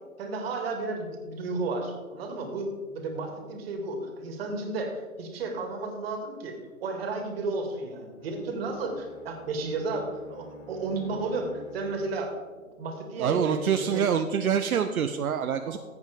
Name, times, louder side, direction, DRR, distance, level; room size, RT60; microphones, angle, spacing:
voice 1, 0.2-14.1 15.6-15.7, right 3 dB, 40° right, 3 dB, 2.3 m, -33 dB
Bowed string instrument, 8.2-12.6, left 2 dB, 25° left, 0.8 m, -50 dB
voice 2, 13.2-15.8, right 8 dB, 75° right, 7 dB, 0.7 m, -26 dB
14.5 x 8.0 x 3.5 m, 1.4 s
hypercardioid pair, 135°, 43 cm